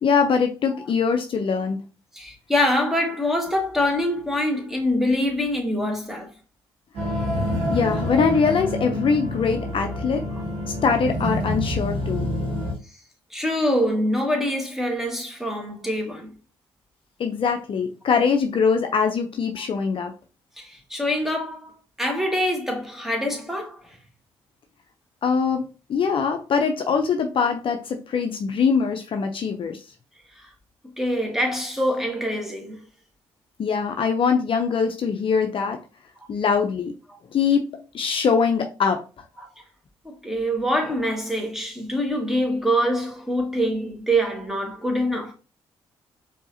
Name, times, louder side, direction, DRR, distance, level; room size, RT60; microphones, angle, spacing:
voice 1, 0.0-1.8 7.7-10.2 10.6-12.3 17.2-20.1 25.2-25.6 25.9-29.8 33.6-35.8 36.3-37.0 37.3-39.0, left 5 dB, 50° left, 0.6 m, -22 dB
voice 2, 2.1-6.3 13.3-16.3 20.6-21.7 22.0-23.8 31.0-32.8 39.4-39.5 40.0-45.3, equal, 5° right, 1.5 m, -24 dB
sound 1, 6.9-12.7, left 1 dB, 75° right, 1.4 m, -27 dB
4.7 x 2.8 x 2.7 m
hypercardioid pair, 50°, 11 cm